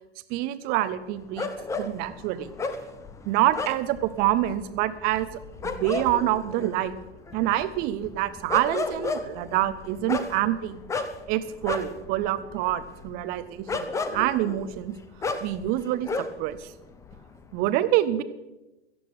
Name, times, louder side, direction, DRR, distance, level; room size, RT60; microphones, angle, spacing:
voice 1, 0.3-2.5 3.2-5.3 5.6-7.0 7.3-10.8 11.3-15.0 15.4-16.7 17.5-18.2, right 14 dB, 25° right, 14 dB, 1.0 m, -26 dB
sound 1, 1.4-16.6 16.8-17.6, left 4 dB, 10° left, 1.0 m, -34 dB
17.0 x 14.0 x 4.9 m, 1.0 s
figure-of-eight pair, 110°, 33 cm